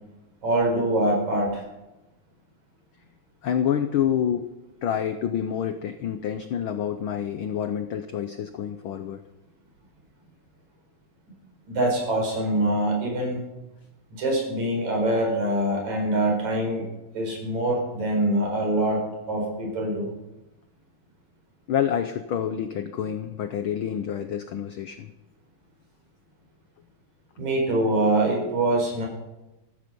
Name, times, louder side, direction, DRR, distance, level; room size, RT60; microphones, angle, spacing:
voice 1, 0.4-1.6 11.7-13.5 14.1-16.8 17.1-20.1 27.4-29.1, right 1 dB, 70° right, 0 dB, 5.9 m, -24 dB
voice 2, 3.4-4.5 4.8-9.2 21.7-25.1, left 9 dB, 80° left, 9 dB, 1.1 m, -28 dB
14.5 x 13.0 x 5.4 m, 0.99 s
omnidirectional pair, 3.3 m